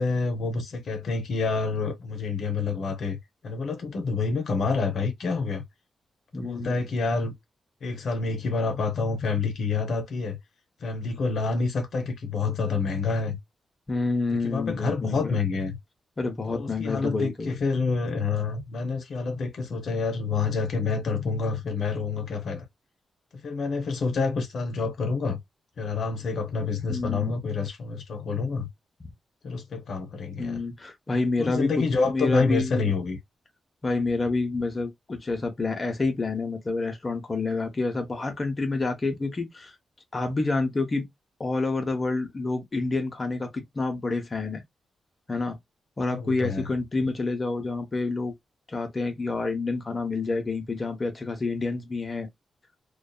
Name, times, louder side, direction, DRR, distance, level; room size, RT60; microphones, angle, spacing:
voice 1, 0.0-5.6 6.3-7.3 7.8-10.4 10.8-13.4 14.4-15.8 16.5-22.7 23.3-25.4 25.8-28.7 29.4-30.6 31.4-33.2 46.0-46.7 47.0-47.1, left 4 dB, 70° left, 0.6 m, -28 dB
voice 2, 6.3-6.8 13.9-15.4 16.2-17.5 26.9-27.4 30.4-32.9 33.8-39.7 40.1-41.1 41.4-44.6 45.3-45.6 46.0-48.3 48.7-52.3, left 3 dB, 30° left, 0.8 m, -28 dB
2.6 x 2.3 x 2.3 m
wide cardioid pair, 115°, 0 cm